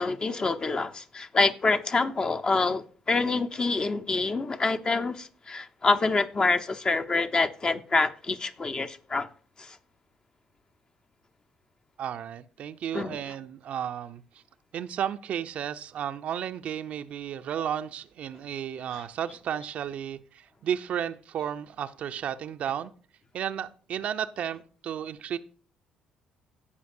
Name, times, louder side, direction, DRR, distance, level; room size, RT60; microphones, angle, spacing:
voice 1, 0.0-9.3 9.6-9.8 12.9-13.2 18.9-19.0, left 3 dB, 35° left, 0.8 m, -26 dB
voice 2, 12.0-14.2 14.7-22.9 23.3-25.4, right 9 dB, 55° right, 0.6 m, -33 dB
17.0 x 5.8 x 2.6 m
hypercardioid pair, 50°, 3 cm